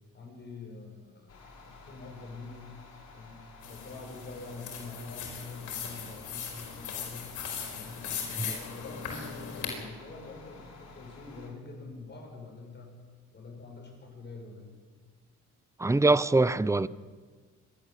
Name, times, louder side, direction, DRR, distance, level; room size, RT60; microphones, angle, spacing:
voice 1, 0.1-1.3 1.6-2.7 3.1-3.4 3.7-7.3 7.7-8.1 8.4-12.9 13.3-14.7, left 3 dB, 35° left, 7.3 m, -46 dB
sound 1, 1.3-11.5, left 3 dB, 55° left, 6.5 m, -52 dB
sound 2, 3.6-9.8, left 7 dB, 85° left, 5.0 m, -39 dB
voice 2, 15.8-16.9, right 2 dB, 10° right, 0.6 m, -23 dB
27.5 x 12.0 x 8.3 m
cardioid pair, 90°, 30 cm